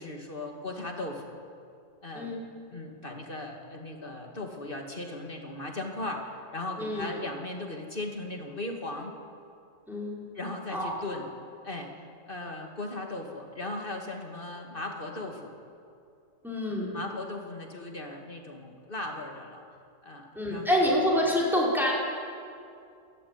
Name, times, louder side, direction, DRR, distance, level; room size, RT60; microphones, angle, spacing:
voice 1, 0.0-1.4 2.0-2.3 2.7-9.2 10.3-11.3 11.6-15.6 16.9-19.6 20.0-20.7, left 2 dB, 30° left, 2 dB, 2.5 m, -37 dB
voice 2, 9.9-10.2 10.7-10.9 16.4-17.0 20.3-21.9, left 1 dB, ahead, -5 dB, 5.8 m, -27 dB
28.5 x 14.0 x 9.6 m, 2.5 s
omnidirectional pair, 1.9 m